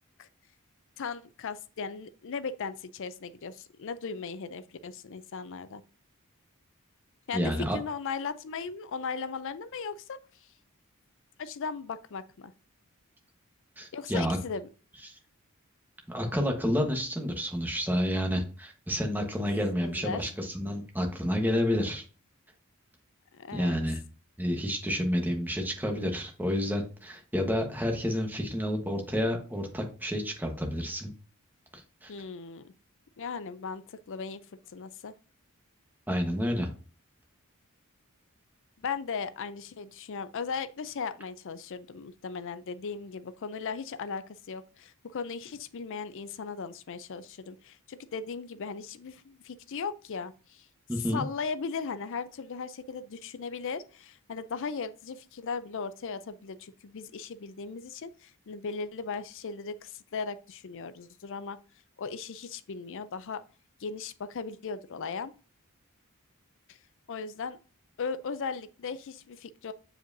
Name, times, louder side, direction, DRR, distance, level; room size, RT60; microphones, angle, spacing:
voice 1, 1.0-5.8 7.3-10.2 11.4-12.5 13.9-14.7 19.4-19.5 19.8-20.2 23.3-23.8 32.1-32.7 33.2-34.4 34.7-35.1 38.8-50.7 51.1-61.6 62.0-63.4 63.8-65.3 66.7-66.8 67.1-67.6 68.0-69.7, left 5 dB, 60° left, 0.5 m, -37 dB
voice 2, 7.3-7.8 13.8-14.4 15.0-15.1 16.1-22.0 23.5-24.0 24.4-31.1 32.0-32.1 36.1-36.7 50.9-51.2, equal, 10° right, 1.2 m, -29 dB
7.6 x 4.9 x 2.6 m
head